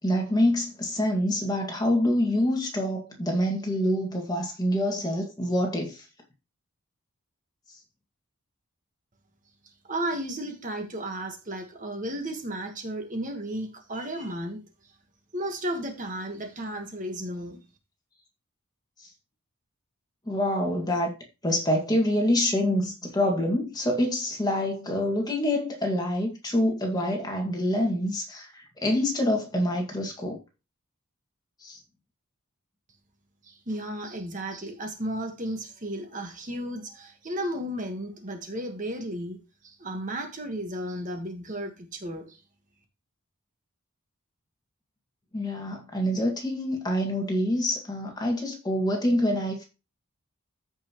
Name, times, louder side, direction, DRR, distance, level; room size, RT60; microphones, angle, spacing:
voice 1, 0.0-6.0 20.3-21.1 21.4-30.4 31.6-31.8 45.3-49.6, left 1 dB, 20° left, 2.0 m, -26 dB
voice 2, 9.8-14.6 14.8-14.9 15.3-17.6 33.4-39.4 39.6-42.4, right 1 dB, 35° right, 1.4 m, -34 dB
14.5 x 5.5 x 3.0 m
head